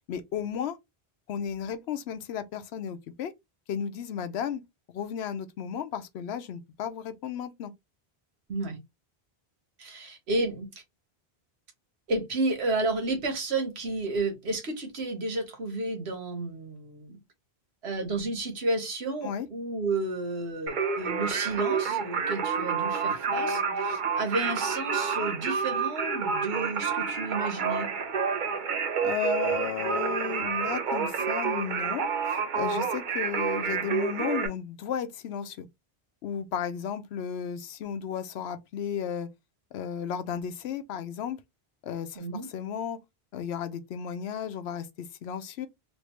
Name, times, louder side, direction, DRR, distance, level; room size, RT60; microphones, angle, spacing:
voice 1, 0.1-0.8 1.3-3.3 3.7-4.6 4.9-7.7 19.2-19.5 29.0-35.7 36.2-39.3 39.7-41.4 41.8-43.0 43.3-45.7, left 8 dB, 90° left, 0.9 m, -34 dB
voice 2, 9.8-10.8 12.1-17.2 17.8-27.9 42.1-42.5, right 2 dB, 80° right, 1.4 m, -31 dB
Singing, 20.7-34.5, right 6 dB, 55° right, 0.8 m, -29 dB
3.3 x 2.7 x 2.9 m
omnidirectional pair, 1.1 m